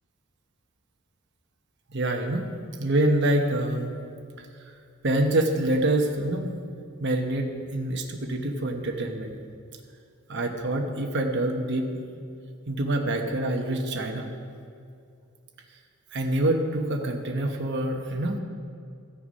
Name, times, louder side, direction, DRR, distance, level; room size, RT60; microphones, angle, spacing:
voice 1, 1.9-2.5 2.8-3.9 4.4-4.5 5.0-6.5 7.0-9.4 10.3-11.9 12.7-14.3 16.1-18.4, right 1 dB, 55° right, 3 dB, 1.0 m, -26 dB
14.0 x 6.7 x 5.3 m, 2.4 s
head